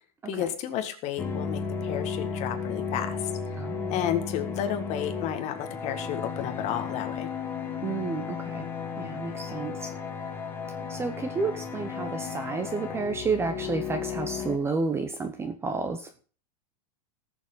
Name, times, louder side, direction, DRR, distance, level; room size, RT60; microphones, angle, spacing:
voice 1, 0.3-3.3 3.9-7.3, left 10 dB, 30° left, 6 dB, 1.8 m, -32 dB
sound 1, 1.2-14.6, left 6 dB, 10° left, 1.7 m, -34 dB
voice 2, 3.6-4.1 7.8-8.7 9.0-9.9 10.9-16.1, right 4 dB, 10° right, 9 dB, 0.8 m, -31 dB
18.5 x 7.1 x 3.9 m, 0.38 s
supercardioid pair, 160°, 21 cm